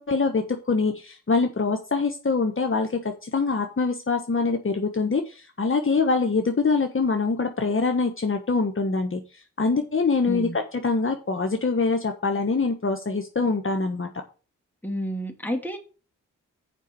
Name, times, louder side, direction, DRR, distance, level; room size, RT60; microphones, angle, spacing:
voice 1, 0.0-9.2 9.6-14.1, left 4 dB, 40° left, 4 dB, 1.3 m, -24 dB
voice 2, 10.3-10.6 14.8-15.8, equal, 5° left, 3 dB, 2.8 m, -30 dB
7.4 x 5.2 x 7.0 m, 0.34 s
cardioid pair, 50°, 31 cm